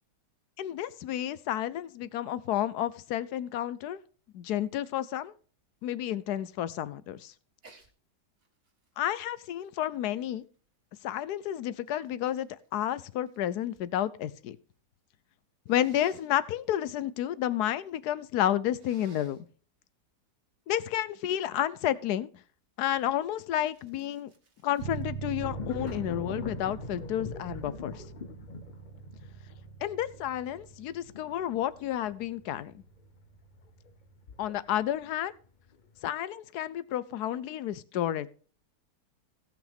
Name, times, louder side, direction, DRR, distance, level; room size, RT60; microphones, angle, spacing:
voice 1, 0.6-4.0 4.3-5.3 5.8-7.3 9.0-10.4 11.0-14.6 15.7-19.5 20.7-22.3 22.8-24.3 24.6-28.0 29.8-32.8 34.4-35.3 36.0-38.3, left 11 dB, 75° left, 17 dB, 1.2 m, -31 dB
Sneeze, 7.6-7.9 8.4-10.7 11.4-13.9 14.2-14.8 15.7-16.3 18.7-19.5 23.0-25.3 25.9-26.2, right 3 dB, 55° right, 2.0 m, -59 dB
Bass guitar, 24.8-34.5, right 7 dB, 85° right, 1.5 m, -44 dB
sound 1, 25.4-35.0 35.4-36.0, left 5 dB, 45° left, 0.6 m, -43 dB
17.5 x 6.0 x 3.5 m, 0.41 s
omnidirectional pair, 1.8 m